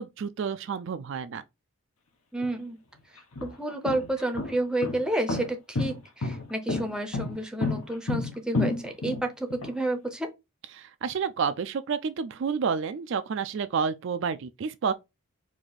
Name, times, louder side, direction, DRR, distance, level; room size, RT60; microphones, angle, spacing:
voice 1, 0.0-1.4 10.7-14.9, right 6 dB, 55° right, 0.3 m, -30 dB
voice 2, 2.3-2.8 3.4-10.3, right 1 dB, 5° right, 0.6 m, -30 dB
sound 1, 2.4-2.5 3.2-9.7, left 2 dB, 80° left, 1.0 m, -30 dB
4.7 x 2.6 x 4.0 m
head